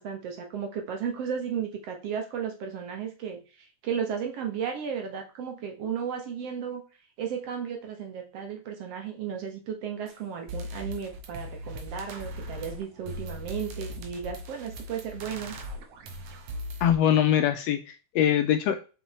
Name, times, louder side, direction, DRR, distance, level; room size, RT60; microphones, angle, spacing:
voice 1, 0.0-3.4 3.8-6.8 7.2-15.6, right 7 dB, 60° right, 3 dB, 2.2 m, -34 dB
sound 1, 10.1-10.2 10.5-16.9, equal, 80° right, 2.5 m, -39 dB
voice 2, 16.8-18.8, left 10 dB, 75° left, 7 dB, 1.6 m, -23 dB
5.7 x 5.4 x 4.2 m, 0.33 s
omnidirectional pair, 3.4 m